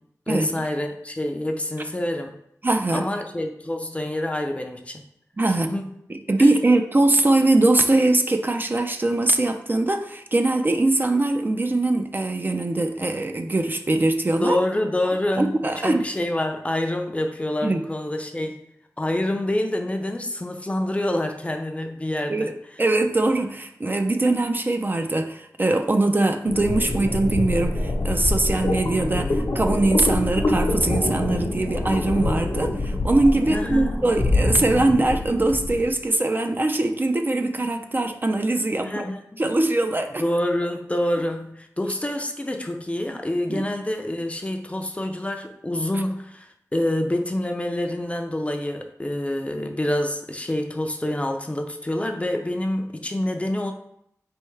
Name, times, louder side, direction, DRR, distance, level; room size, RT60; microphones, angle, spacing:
voice 1, 0.3-2.3 2.9-5.0 5.5-5.9 6.4-6.5 14.4-18.7 19.0-22.5 33.5-34.0 38.8-39.4 40.2-53.7, left 1 dB, 20° left, 4 dB, 0.5 m, -27 dB
voice 2, 2.6-3.1 5.4-5.7 6.1-14.6 15.4-16.1 17.6-17.8 22.3-22.5 22.8-39.1 39.4-40.2 43.5-43.6, right 2 dB, 35° right, 6 dB, 0.4 m, -22 dB
sound 1, 26.4-35.9, left 2 dB, 65° left, 0.8 m, -25 dB
4.3 x 3.4 x 3.2 m, 0.73 s
wide cardioid pair, 70°, 6 cm